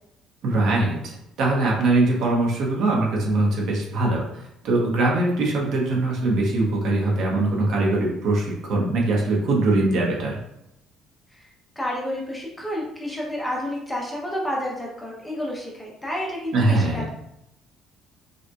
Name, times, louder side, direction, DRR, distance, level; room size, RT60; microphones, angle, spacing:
voice 1, 0.4-10.4 16.5-17.1, right 2 dB, 60° right, -2 dB, 1.2 m, -22 dB
voice 2, 11.3-17.1, left 1 dB, 5° left, -2 dB, 0.7 m, -30 dB
5.4 x 3.0 x 2.3 m, 0.80 s
cardioid pair, 175°, 0 cm